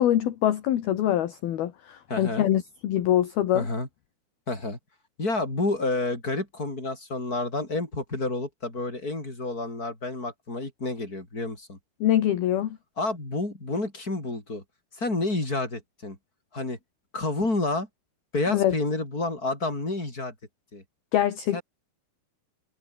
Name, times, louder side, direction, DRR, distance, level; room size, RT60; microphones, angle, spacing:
voice 1, 0.0-3.7 12.0-12.8 18.5-18.7 21.1-21.6, left 11 dB, 65° left, 3.4 m, -24 dB
voice 2, 2.1-2.5 3.5-3.9 4.5-4.8 5.2-11.8 13.0-14.6 14.9-16.2 16.5-16.8 17.1-17.9 18.3-20.3 20.7-20.8 21.5-21.6, left 2 dB, 20° left, 7.4 m, -29 dB
omnidirectional pair, 5.1 m